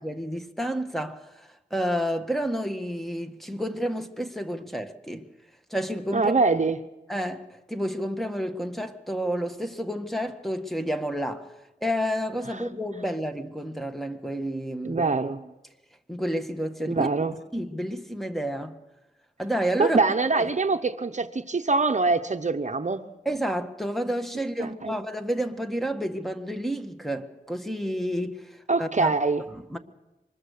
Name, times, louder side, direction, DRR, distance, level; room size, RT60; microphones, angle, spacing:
voice 1, 0.0-5.3 5.7-6.3 7.1-11.5 11.8-15.0 16.1-17.1 17.5-18.8 19.4-20.0 20.4-20.5 23.2-29.1 29.5-29.8, equal, ahead, 1.7 m, -30 dB
voice 2, 6.1-6.8 12.5-12.6 14.8-15.4 16.9-17.3 19.8-23.0 24.6-25.0 28.7-29.4, right 3 dB, 45° right, 0.9 m, -24 dB
24.5 x 21.0 x 6.7 m
wide cardioid pair, 60°, 17 cm